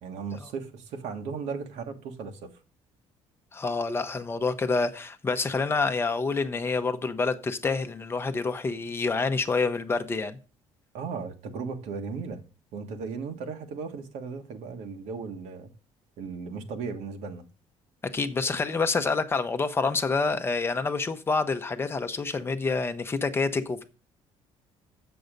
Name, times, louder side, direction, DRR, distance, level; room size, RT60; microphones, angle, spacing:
voice 1, 0.0-2.6 10.9-12.4 12.7-15.7 16.2-17.4, right 5 dB, 75° right, 1.6 m, -36 dB
voice 2, 3.5-10.4 18.1-23.8, left 4 dB, 20° left, 0.8 m, -27 dB
7.8 x 6.9 x 5.2 m
cardioid pair, 150°, 12 cm